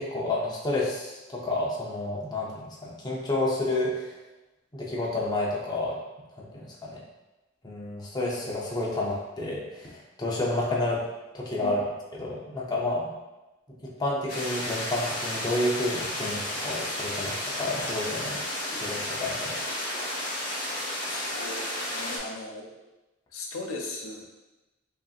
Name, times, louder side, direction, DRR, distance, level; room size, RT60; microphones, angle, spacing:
voice 1, 0.0-4.1 4.7-6.0 6.4-7.0 7.6-11.0 11.3-11.8 12.1-13.1 13.8-18.4 18.7-19.6, left 2 dB, 20° left, -4 dB, 0.7 m, -30 dB
sound 1, 14.3-22.2, left 1 dB, 40° left, 1.5 m, -32 dB
voice 2, 21.1-22.7 23.3-24.2, left 2 dB, 80° left, 0 dB, 0.6 m, -38 dB
5.1 x 2.8 x 2.4 m, 1.0 s
head